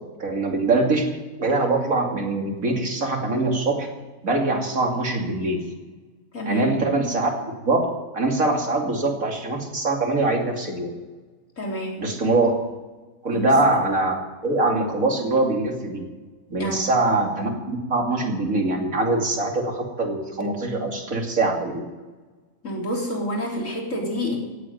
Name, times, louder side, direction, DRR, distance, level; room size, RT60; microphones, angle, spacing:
voice 1, 0.2-1.1 1.4-3.9 4.2-5.6 6.5-7.9 8.1-10.9 12.0-12.5 13.2-14.1 14.4-16.1 16.5-21.8, right 2 dB, 85° right, 1 dB, 3.1 m, -23 dB
voice 2, 6.3-6.7 11.6-12.0 13.3-13.6 16.6-16.8 22.6-24.4, equal, 70° left, -1 dB, 4.1 m, -28 dB
17.0 x 8.6 x 9.2 m, 1.3 s
omnidirectional pair, 1.4 m